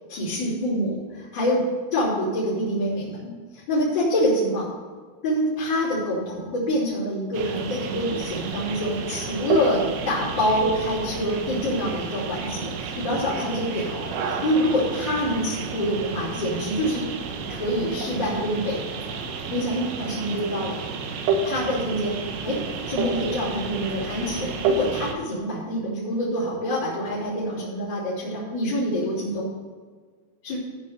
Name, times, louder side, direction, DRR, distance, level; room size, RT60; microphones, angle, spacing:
voice 1, 0.1-1.6 1.9-4.7 5.2-9.8 10.0-17.0 17.5-18.8 19.5-20.8 21.4-22.2 22.4-22.5 22.9-29.5 30.4-30.6, equal, 25° left, -10 dB, 3.7 m, -26 dB
sound 1, 7.3-25.1, right 4 dB, 90° right, 3.7 m, -30 dB
14.0 x 5.2 x 6.7 m, 1.5 s
omnidirectional pair, 5.6 m